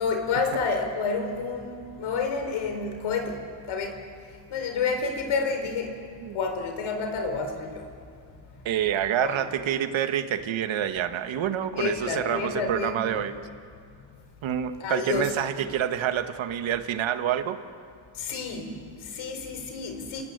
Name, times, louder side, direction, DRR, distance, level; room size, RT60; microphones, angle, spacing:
voice 1, 0.0-3.4 3.7-4.0 4.3-6.0 6.3-7.9 9.2-9.3 11.7-13.1 14.8-15.3 18.1-20.2, left 4 dB, 80° left, 5 dB, 4.4 m, -29 dB
voice 2, 8.6-13.3 14.4-17.6, right 10 dB, 75° right, 9 dB, 1.7 m, -27 dB
29.0 x 18.5 x 8.2 m, 2.3 s
cardioid pair, 95°, 47 cm